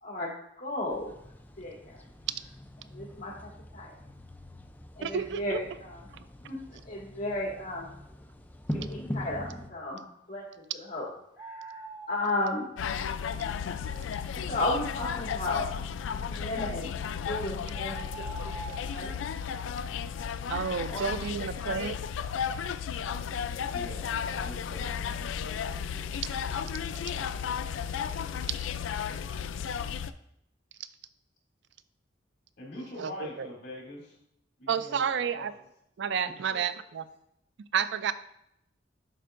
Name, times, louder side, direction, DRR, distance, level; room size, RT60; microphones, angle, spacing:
voice 1, 0.0-1.1 1.6-1.8 2.9-3.9 5.0-6.1 6.5-7.9 8.7-10.5 10.9-11.1 11.4-11.8 12.1-12.7 14.5-15.7 16.3-16.9 17.3-19.3 20.9-21.8 27.1-27.2, left 2 dB, 45° left, -2 dB, 1.9 m, -34 dB
sound 1, 0.9-9.7, equal, 10° left, 0.4 m, -42 dB
voice 2, 5.0-5.6 20.5-22.0 33.0-33.1 33.4-33.5 34.7-35.5 36.0-37.0 37.7-38.1, right 7 dB, 65° right, 13 dB, 0.4 m, -30 dB
sound 2, 11.4-12.3 16.9-17.0 17.7-19.0, right 4 dB, 25° right, 0.8 m, -43 dB
sound 3, 12.8-30.1, left 7 dB, 85° left, 0.3 m, -34 dB
voice 3, 23.6-25.4 25.7-28.2 32.6-34.2 34.6-35.5 36.2-36.6, left 1 dB, 65° left, -3 dB, 2.6 m, -46 dB
11.5 x 4.5 x 2.5 m, 0.77 s
head